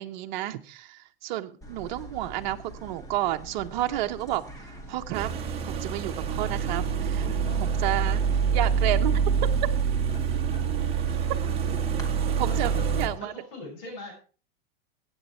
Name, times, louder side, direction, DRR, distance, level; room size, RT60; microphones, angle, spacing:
voice 1, 0.0-4.4 4.9-5.3 5.6-7.2 7.6-8.2 8.5-9.2 12.4-13.3, right 14 dB, 50° right, 6 dB, 1.1 m, -31 dB
sound 1, 1.6-12.1, right 1 dB, 10° left, 2.0 m, -44 dB
sound 2, 5.1-13.1, right 6 dB, 20° right, 1.9 m, -26 dB
voice 2, 7.2-8.1 10.1-10.2 10.5-11.2 12.5-12.7 13.2-14.1, left 2 dB, 50° left, 0 dB, 6.5 m, -43 dB
15.5 x 9.1 x 4.4 m, 0.37 s
supercardioid pair, 150°, 29 cm